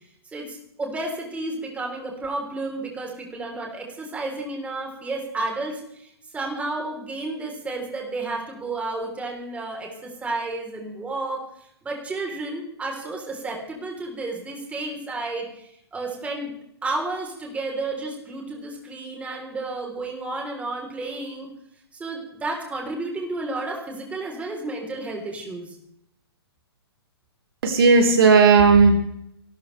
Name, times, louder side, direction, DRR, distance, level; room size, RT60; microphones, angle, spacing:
voice 1, 0.3-11.4 11.8-16.5 16.8-21.5 21.9-25.8, right 2 dB, 10° right, 0 dB, 3.7 m, -32 dB
voice 2, 27.6-28.9, right 4 dB, 60° right, 2 dB, 3.9 m, -14 dB
29.5 x 13.0 x 3.4 m, 0.74 s
hypercardioid pair, 135°, 14 cm